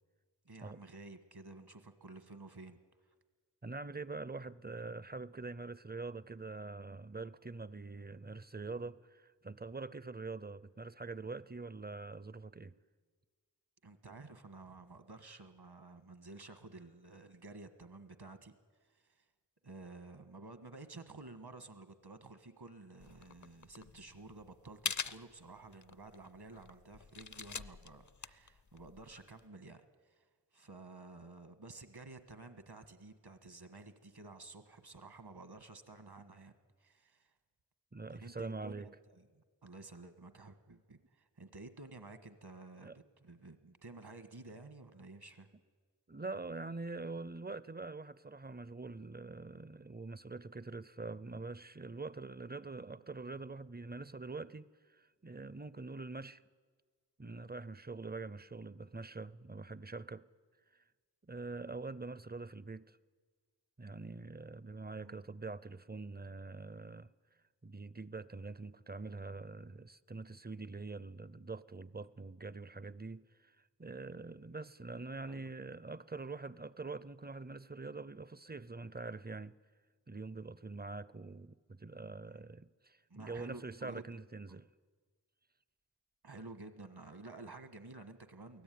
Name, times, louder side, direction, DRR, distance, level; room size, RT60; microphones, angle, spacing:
voice 1, 0.4-2.8 3.0-3.1 13.8-18.5 18.8-19.3 19.6-30.3 30.5-36.5 36.8-37.3 38.1-45.5 64.9-65.2 75.3-75.4 82.3-82.5 83.1-84.2 84.5-84.6 86.2-88.6, right 3 dB, 65° right, 1.7 m, -52 dB
voice 2, 3.6-12.7 37.9-38.9 42.8-43.0 46.1-56.4 57.2-60.3 61.2-63.0 63.8-67.1 67.6-79.5 80.1-84.7, right 3 dB, 25° right, 0.6 m, -44 dB
sound 1, 23.0-29.4, left 5 dB, 45° left, 0.6 m, -45 dB
23.0 x 17.0 x 9.4 m
wide cardioid pair, 55°, 41 cm